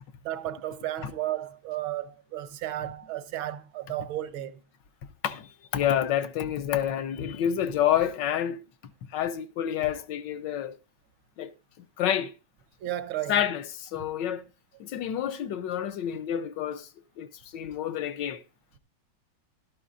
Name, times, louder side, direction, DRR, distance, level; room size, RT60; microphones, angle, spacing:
voice 1, 0.2-4.6 12.8-13.4 14.0-14.1, right 13 dB, 85° right, 1.6 m, -33 dB
voice 2, 5.2-8.6 9.1-10.8 11.4-11.5 11.8-12.3 13.3-14.4 14.8-16.9 17.2-18.4, left 10 dB, 70° left, 1.3 m, -28 dB
12.5 x 12.0 x 2.5 m
omnidirectional pair, 2.2 m